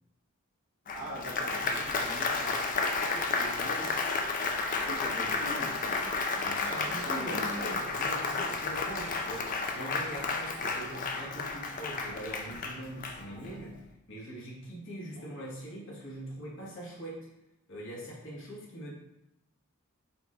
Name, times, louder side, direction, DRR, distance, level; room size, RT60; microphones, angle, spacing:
Applause, 0.9-13.6, left 4 dB, 40° left, 0.4 m, -32 dB
voice 1, 0.9-4.0 4.5-7.8 15.2-15.3, equal, 70° right, -4 dB, 1.2 m, -43 dB
voice 2, 6.4-13.8 14.1-17.2 17.7-18.9, right 1 dB, 60° left, -5 dB, 1.4 m, -42 dB
4.3 x 2.5 x 4.2 m, 0.87 s
head